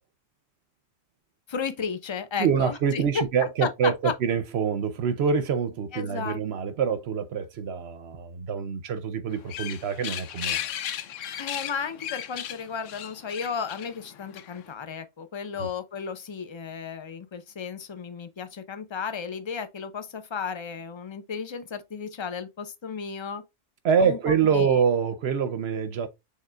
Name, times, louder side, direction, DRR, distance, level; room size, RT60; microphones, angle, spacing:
voice 1, 1.5-3.2 3.6-4.1 5.9-6.4 11.4-23.4 24.0-24.8, left 6 dB, 40° left, 0.4 m, -34 dB
voice 2, 2.4-10.7 15.6-15.7 23.8-26.1, right 6 dB, 65° right, 0.8 m, -25 dB
sound 1, 9.3-14.7, left 10 dB, 75° left, 1.0 m, -35 dB
6.5 x 3.5 x 2.2 m
omnidirectional pair, 1.3 m